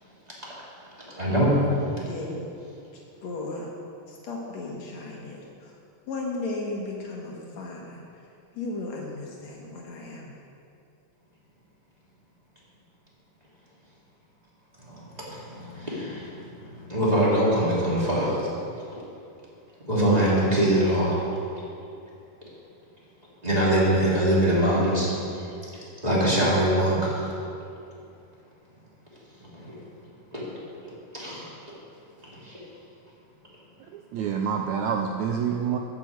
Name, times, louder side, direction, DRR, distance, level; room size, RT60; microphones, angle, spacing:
voice 1, 1.1-1.6 14.9-16.4 16.7-18.5 19.9-21.2 23.4-25.5 26.0-27.3 29.5-29.7 30.3-30.4 31.1-31.4 32.3-32.6, right 1 dB, 15° right, -7 dB, 2.4 m, -23 dB
voice 2, 2.1-2.5 3.2-3.7 4.1-5.8 6.1-8.0 8.5-10.3, left 2 dB, 65° left, -2 dB, 2.2 m, -35 dB
voice 3, 33.9-35.8, right 7 dB, 85° right, 3 dB, 1.6 m, -27 dB
8.9 x 7.6 x 7.9 m, 2.6 s
omnidirectional pair, 3.8 m